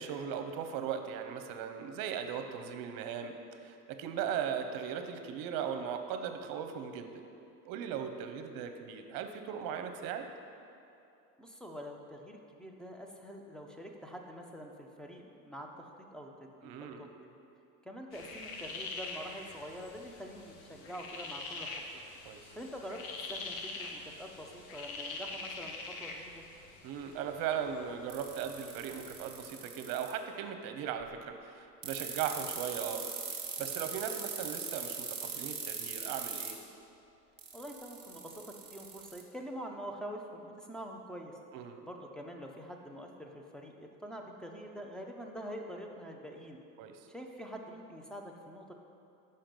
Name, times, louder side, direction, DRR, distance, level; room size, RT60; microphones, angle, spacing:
voice 1, 0.0-7.2 7.7-10.3 16.6-17.1 22.2-22.4 26.8-33.0 33.3-36.6 41.5-41.8 46.8-46.9, right 8 dB, 55° right, 7 dB, 0.7 m, -38 dB
voice 2, 11.4-16.7 17.0-17.3 17.8-22.0 22.5-23.0 23.3-25.7 26.0-26.4 33.7-34.0 37.5-41.3 41.8-46.6 47.1-48.7, equal, ahead, 1 dB, 0.5 m, -45 dB
sound 1, 18.1-29.4, left 3 dB, 85° left, 1.0 m, -45 dB
sound 2, 28.1-30.1 31.8-36.5 37.4-39.2, right 7 dB, 35° right, 1.4 m, -40 dB
5.8 x 5.4 x 5.2 m, 2.7 s
supercardioid pair, 110°, 41 cm